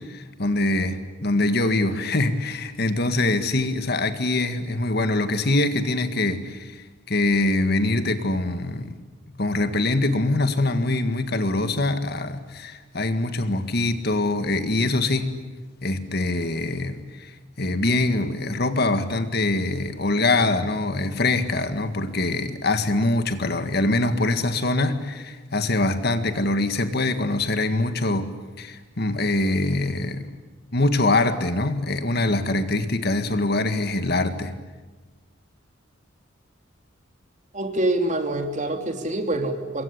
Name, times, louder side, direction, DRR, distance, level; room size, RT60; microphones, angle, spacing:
voice 1, 0.1-9.0 9.4-15.3 15.8-17.3 17.6-30.3 30.7-34.5, left 2 dB, 55° left, 9 dB, 1.9 m, -24 dB
voice 2, 37.5-39.8, right 1 dB, 40° right, 5 dB, 3.0 m, -25 dB
26.5 x 22.5 x 10.0 m, 1.3 s
head